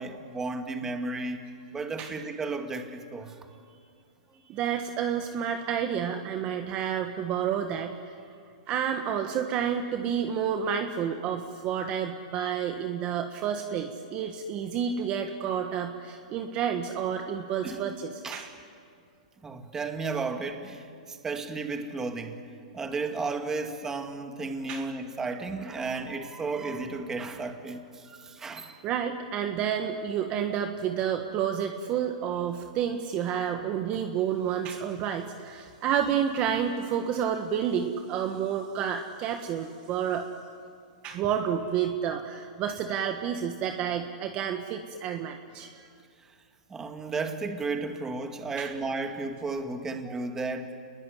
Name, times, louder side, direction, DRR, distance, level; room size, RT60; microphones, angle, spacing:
voice 1, 0.0-1.4 1.7-3.4 17.6-18.0 18.2-18.5 19.4-22.4 22.7-28.8 46.7-50.8, right 3 dB, 10° right, 5 dB, 2.1 m, -33 dB
voice 2, 4.4-8.2 8.7-18.5 24.7-24.9 28.8-40.3 41.0-45.9 48.6-48.7, right 8 dB, 30° right, 5 dB, 1.5 m, -30 dB
28.5 x 21.0 x 10.0 m, 2.3 s
hypercardioid pair, 150°, 4 cm